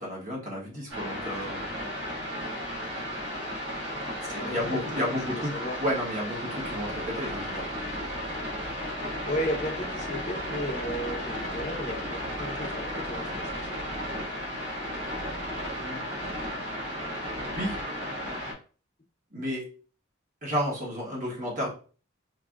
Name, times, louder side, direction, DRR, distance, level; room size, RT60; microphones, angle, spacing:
voice 1, 0.0-1.7 4.3-5.5 5.8-7.6 15.7-16.0 17.4-17.8 19.3-19.7 20.4-21.7, equal, 40° right, -4 dB, 1.3 m, -32 dB
sound 1, 0.9-18.5, equal, 60° right, 1.8 m, -34 dB
voice 2, 4.3-5.8 9.2-13.8, equal, 35° left, 2 dB, 0.7 m, -35 dB
4.5 x 2.7 x 2.4 m, 0.39 s
head